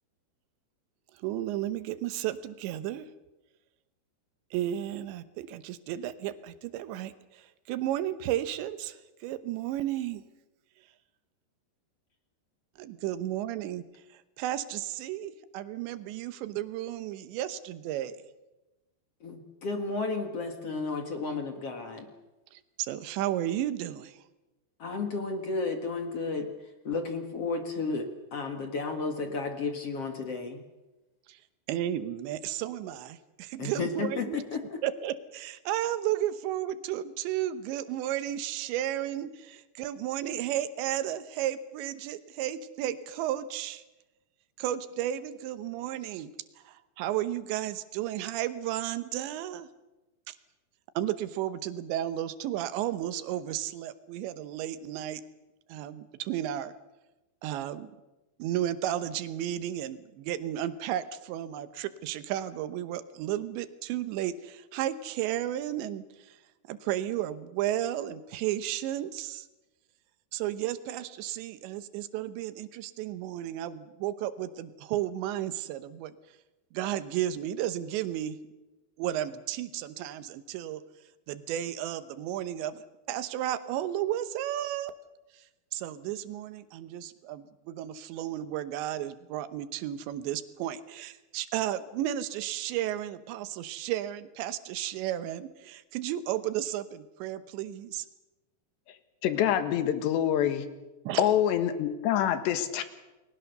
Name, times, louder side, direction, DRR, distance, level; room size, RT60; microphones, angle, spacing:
voice 1, 1.2-3.0 4.5-10.2 12.8-18.2 22.5-24.2 31.3-31.4 31.7-34.4 34.8-43.8 44.6-46.3 46.7-49.7 50.3-50.4 51.0-55.2 55.7-56.7 57.4-57.9 58.4-66.4 66.7-69.5 70.3-76.1 76.7-78.4 79.0-80.8 81.3-82.8 83.1-84.9 85.3-85.4 85.7-98.1 101.0-101.2, right 12 dB, 85° right, 12 dB, 3.3 m, -33 dB
voice 2, 19.2-22.1 24.8-26.5 26.8-30.6 33.6-34.8, left 3 dB, 50° left, 5 dB, 2.1 m, -33 dB
voice 3, 99.2-100.7 101.2-102.8, left 10 dB, 80° left, 10 dB, 3.7 m, -26 dB
29.5 x 21.0 x 6.7 m, 1.1 s
omnidirectional pair, 5.0 m